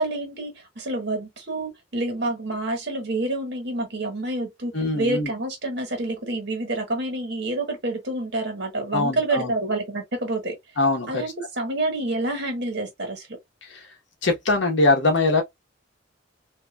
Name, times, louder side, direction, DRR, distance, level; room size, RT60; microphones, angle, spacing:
voice 1, 0.0-10.5 11.1-13.3, right 2 dB, 60° right, 1.4 m, -28 dB
voice 2, 4.7-5.3 8.9-9.5 10.8-11.2 13.6-13.9 14.2-15.4, left 2 dB, 70° left, 1.2 m, -22 dB
2.9 x 2.7 x 2.3 m
head